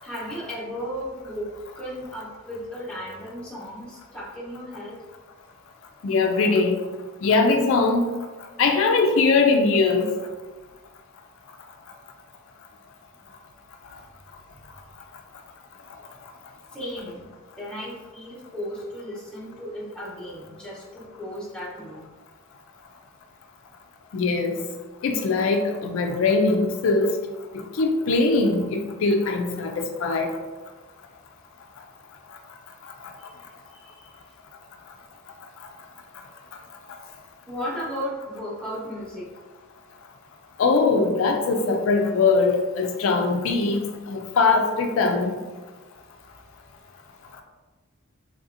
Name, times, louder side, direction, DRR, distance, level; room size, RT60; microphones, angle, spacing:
voice 1, 0.0-5.0 13.2-13.3 14.5-14.6 16.7-22.1 33.2-33.4 33.7-34.1 37.5-39.3, equal, 5° left, -7 dB, 0.9 m, -35 dB
voice 2, 6.0-6.8 7.2-8.1 8.6-10.1 24.1-24.6 25.0-27.1 27.5-30.4 40.6-45.4, left 3 dB, 70° left, 4 dB, 0.4 m, -21 dB
3.9 x 2.7 x 2.5 m, 1.3 s
head